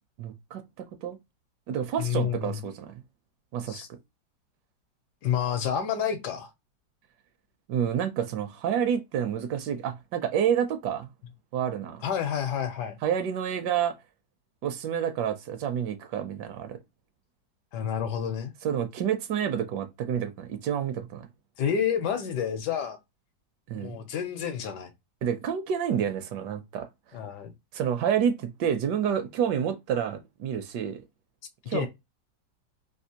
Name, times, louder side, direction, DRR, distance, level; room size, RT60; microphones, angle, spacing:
voice 1, 0.2-1.2 1.7-2.9 3.5-3.8 7.7-11.1 11.5-12.0 13.0-14.0 14.6-16.8 18.6-21.3 23.7-24.0 25.2-26.9 27.7-31.0 31.7-31.9, right 8 dB, 75° right, 1.1 m, -29 dB
voice 2, 2.0-2.6 3.7-3.9 5.2-6.5 12.0-13.0 17.7-18.5 21.6-23.0 23.7-24.9 27.1-27.5 31.7-31.9, left 8 dB, 75° left, 1.2 m, -29 dB
3.4 x 2.7 x 2.7 m
omnidirectional pair, 2.0 m